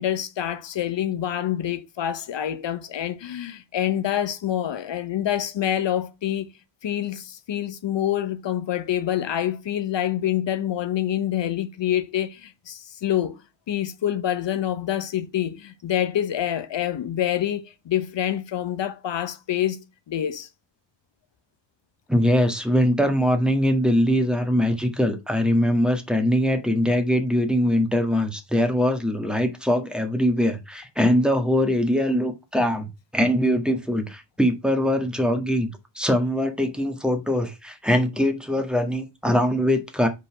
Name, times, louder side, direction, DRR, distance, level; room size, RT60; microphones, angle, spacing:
voice 1, 0.0-6.5 6.8-13.4 13.7-20.5, left 11 dB, 75° left, 0.9 m, -26 dB
voice 2, 22.1-35.7 35.9-40.1, equal, ahead, 1.6 m, -22 dB
5.2 x 4.1 x 5.9 m
cardioid pair, 95°, 44 cm